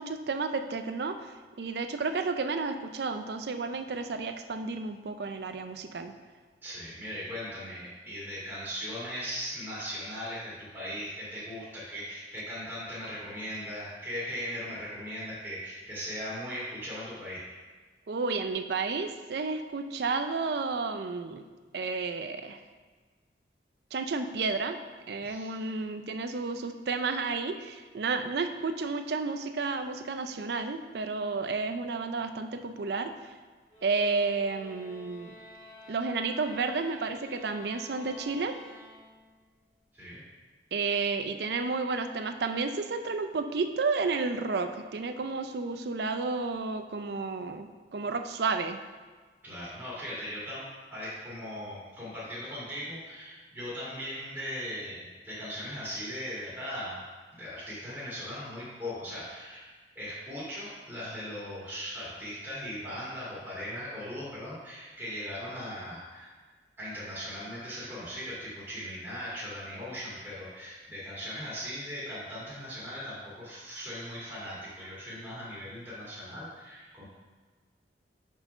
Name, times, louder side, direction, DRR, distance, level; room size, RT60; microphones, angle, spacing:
voice 1, 0.0-6.1 18.1-21.4 21.7-22.6 23.9-24.8 25.1-33.3 33.8-35.3 35.9-38.6 40.7-48.8, right 4 dB, 65° right, 8 dB, 0.5 m, -31 dB
voice 2, 6.6-17.4 25.2-25.5 39.9-40.2 49.4-57.0 57.3-59.7 60.0-66.3 66.8-77.0, equal, 10° right, -10 dB, 2.0 m, -39 dB
sound 1, 33.7-39.4, equal, 30° left, 1.9 m, -50 dB
5.6 x 4.7 x 5.7 m, 1.4 s
head